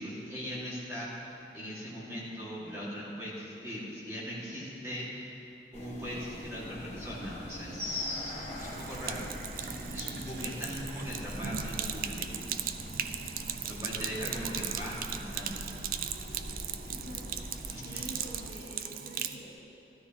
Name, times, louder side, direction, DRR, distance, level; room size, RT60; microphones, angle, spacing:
voice 1, 0.0-5.3 5.7-12.3 13.7-15.6 17.7-18.0, equal, 15° right, -8 dB, 2.0 m, -39 dB
sound 1, 5.7-18.5, equal, 40° left, 1.3 m, -43 dB
Sink (filling or washing), 8.5-19.4, right 9 dB, 50° right, 0.4 m, -38 dB
voice 2, 13.7-14.6 16.8-19.5, equal, 70° left, -5 dB, 2.1 m, -48 dB
13.5 x 12.5 x 2.9 m, 2.8 s
head